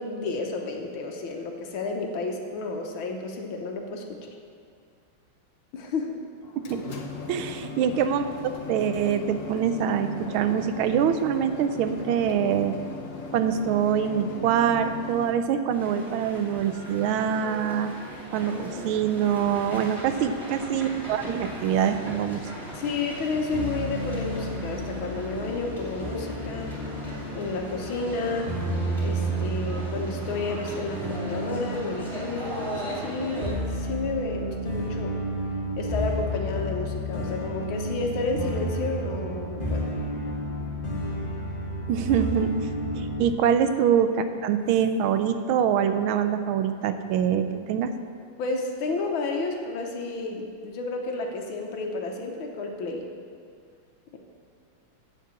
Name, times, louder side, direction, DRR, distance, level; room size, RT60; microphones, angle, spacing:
voice 1, 0.0-4.3 5.7-6.2 18.5-19.0 22.7-26.7 27.3-28.5 29.0-35.2 35.8-39.9 42.8-43.1 48.4-53.1, left 3 dB, 75° left, 2 dB, 1.8 m, -31 dB
sound 1, 6.4-15.3, left 4 dB, 50° left, 1.0 m, -38 dB
voice 2, 7.3-8.3 8.7-12.8 13.3-17.9 18.3-18.6 18.8-22.5 41.9-42.5 43.0-47.9, right 8 dB, 80° right, 10 dB, 1.4 m, -24 dB
sound 2, 15.7-33.5, equal, ahead, 2.4 m, -38 dB
sound 3, 23.5-43.3, right 1 dB, 30° left, 1.2 m, -32 dB
7.5 x 7.2 x 8.1 m, 2.2 s
omnidirectional pair, 2.3 m